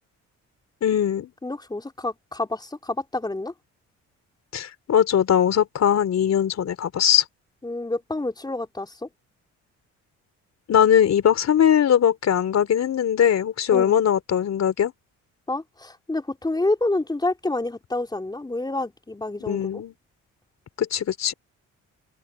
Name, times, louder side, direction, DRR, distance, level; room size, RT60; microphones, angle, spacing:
voice 1, 0.8-1.3 4.5-7.2 10.7-14.9 19.5-19.9 20.8-21.3, left 9 dB, 60° left, 4.2 m, -20 dB
voice 2, 1.4-3.5 7.6-9.1 13.7-14.0 15.5-19.8, left 2 dB, 15° left, 4.4 m, -28 dB
cardioid pair, 90°, 30 cm